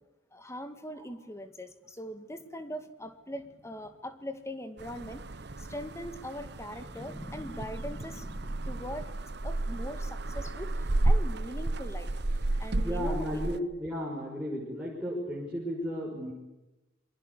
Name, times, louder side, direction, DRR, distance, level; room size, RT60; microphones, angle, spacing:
voice 1, 0.3-9.1 9.4-12.1 12.6-13.2, equal, 15° left, 9 dB, 2.2 m, -41 dB
sound 1, 4.8-13.6, right 2 dB, 55° right, 1.0 m, -32 dB
voice 2, 12.8-16.3, equal, 5° right, -4 dB, 5.9 m, -34 dB
27.5 x 23.5 x 8.5 m, 0.98 s
head